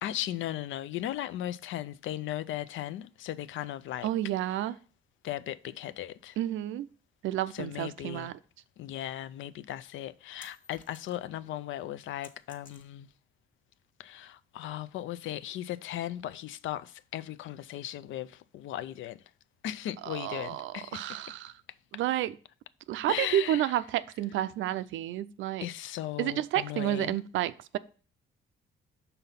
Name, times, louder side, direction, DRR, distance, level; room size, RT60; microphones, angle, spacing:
voice 1, 0.0-4.1 5.2-6.4 7.5-8.3 8.8-13.1 14.0-19.2 19.6-21.2 23.1-23.7 25.6-27.2, left 12 dB, 75° left, 0.5 m, -37 dB
voice 2, 4.0-4.7 6.4-6.9 7.2-8.3 20.1-21.5 21.9-22.3 22.9-25.7 26.2-27.8, right 13 dB, 80° right, 0.5 m, -30 dB
sound 1, 10.4-11.4 11.8-13.2, left 4 dB, 45° left, 1.3 m, -55 dB
5.7 x 4.0 x 5.6 m
cardioid pair, 90°, 20 cm